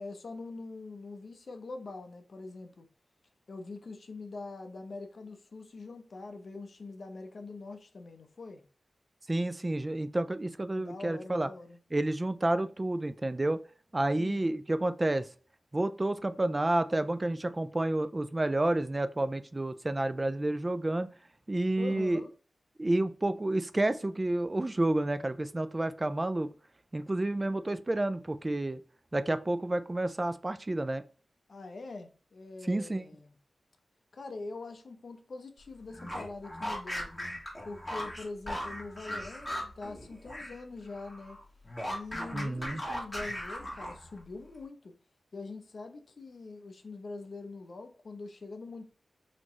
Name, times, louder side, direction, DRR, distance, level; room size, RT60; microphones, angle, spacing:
voice 1, 0.0-2.9 3.5-8.6 10.7-11.8 14.2-14.4 21.8-22.3 31.5-33.4 34.1-37.1 37.6-41.4 41.9-44.9 45.3-48.8, left 3 dB, 65° left, 0.7 m, -44 dB
voice 2, 9.3-11.5 11.9-13.6 13.9-15.3 15.7-21.1 21.5-22.2 22.8-26.5 26.9-28.8 29.1-31.0 32.7-33.0 42.3-42.8, right 1 dB, 25° right, 0.3 m, -30 dB
sound 1, 35.9-40.6 40.9-44.2, equal, 10° left, 1.8 m, -38 dB
4.2 x 3.0 x 3.1 m
wide cardioid pair, 75°, 0 cm